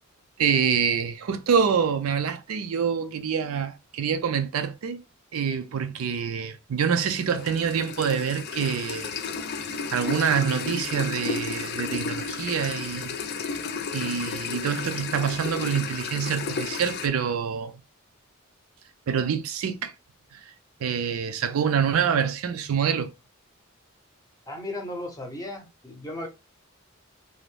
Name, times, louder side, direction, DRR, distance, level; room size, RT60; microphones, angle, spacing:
voice 1, 0.4-5.0 5.3-9.2 9.9-13.1 13.9-17.7 19.1-19.9 20.3-20.4 20.8-23.1, right 7 dB, 85° right, 0.4 m, -26 dB
sound 1, 7.0-17.1, left 5 dB, 50° left, 0.4 m, -33 dB
voice 2, 24.5-26.3, left 1 dB, 15° left, 0.6 m, -35 dB
2.6 x 2.0 x 3.1 m
head